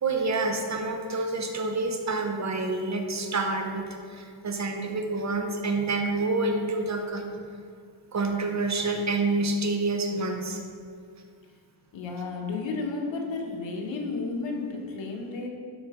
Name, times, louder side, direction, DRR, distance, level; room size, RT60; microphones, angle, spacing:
voice 1, 0.0-7.2 8.1-10.6, right 3 dB, 40° right, 3 dB, 1.0 m, -28 dB
voice 2, 11.9-15.5, left 3 dB, 80° left, 0 dB, 1.5 m, -32 dB
12.0 x 4.3 x 5.1 m, 2.1 s
cardioid pair, 115°, 45 cm